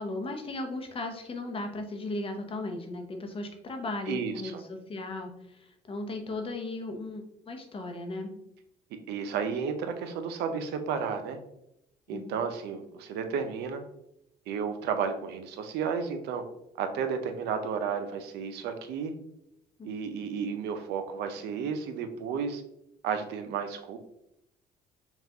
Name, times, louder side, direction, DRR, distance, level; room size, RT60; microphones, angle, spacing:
voice 1, 0.0-8.4 12.1-12.3 19.8-19.9, left 2 dB, 35° left, 5 dB, 0.7 m, -36 dB
voice 2, 4.1-4.6 9.1-11.4 12.1-13.8 14.5-16.4 16.8-19.1 19.8-22.6 23.0-24.0, right 6 dB, 80° right, 7 dB, 0.6 m, -32 dB
5.4 x 2.4 x 2.8 m, 0.81 s
cardioid pair, 110°, 17 cm